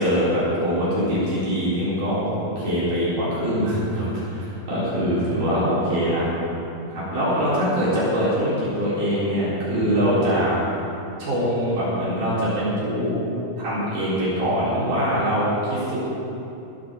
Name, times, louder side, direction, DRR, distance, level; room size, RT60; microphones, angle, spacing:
voice 1, 0.0-6.3 6.9-10.6 11.2-13.2 13.6-16.0, equal, 75° right, -10 dB, 6.2 m, -23 dB
21.0 x 14.0 x 4.0 m, 2.8 s
omnidirectional pair, 3.7 m